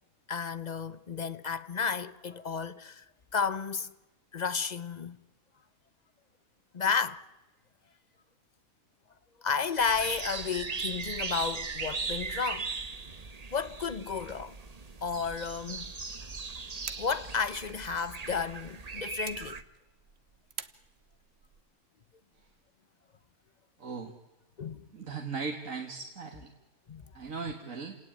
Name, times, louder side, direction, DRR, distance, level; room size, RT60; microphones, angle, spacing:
voice 1, 0.3-3.0 3.3-3.9 4.3-5.2 6.7-7.2 9.4-12.7 13.5-14.6 15.0-15.9 17.0-19.6 24.6-24.9 26.9-27.0, left 5 dB, 35° left, 0.9 m, -32 dB
sound 1, 9.8-19.6, right 4 dB, 30° right, 1.1 m, -38 dB
sound 2, 16.6-21.6, right 6 dB, 50° right, 1.4 m, -49 dB
voice 2, 23.8-24.1 24.9-26.5 27.1-28.0, right 5 dB, 65° right, 2.3 m, -38 dB
30.0 x 18.5 x 9.0 m
omnidirectional pair, 1.5 m